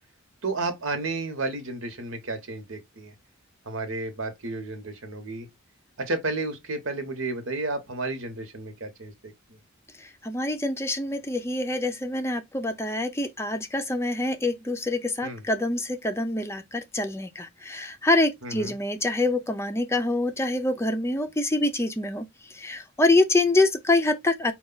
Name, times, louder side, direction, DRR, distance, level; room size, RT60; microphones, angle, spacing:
voice 1, 0.4-3.1 3.6-5.5 6.0-9.6 15.2-15.4 18.4-18.7, right 3 dB, 75° right, 1.2 m, -32 dB
voice 2, 10.0-22.3 22.5-24.5, left 2 dB, 15° left, 0.5 m, -25 dB
4.9 x 2.3 x 3.8 m
head